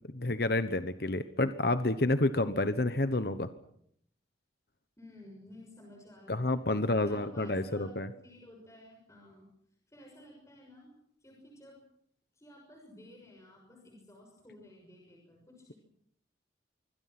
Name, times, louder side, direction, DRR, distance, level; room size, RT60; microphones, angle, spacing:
voice 1, 0.1-3.5 6.3-8.1, left 2 dB, 55° left, 11 dB, 1.1 m, -29 dB
voice 2, 5.0-9.5 9.9-10.9 11.2-11.8 12.3-15.7, left 1 dB, 15° left, 0 dB, 6.3 m, -54 dB
26.0 x 24.0 x 6.0 m, 0.70 s
head